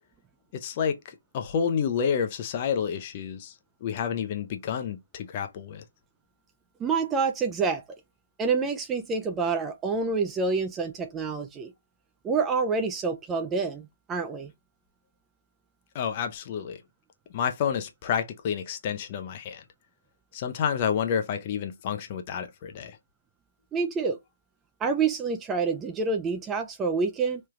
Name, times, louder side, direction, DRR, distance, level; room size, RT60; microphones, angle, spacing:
voice 1, 0.5-3.5 3.8-5.8 15.9-16.8 17.3-19.6 20.3-23.0, left 7 dB, 35° left, 0.6 m, -29 dB
voice 2, 6.8-7.8 8.4-11.7 12.2-14.5 23.7-24.2 24.8-27.4, right 4 dB, 15° right, 0.4 m, -27 dB
3.2 x 2.3 x 3.0 m
hypercardioid pair, 150°, 0 cm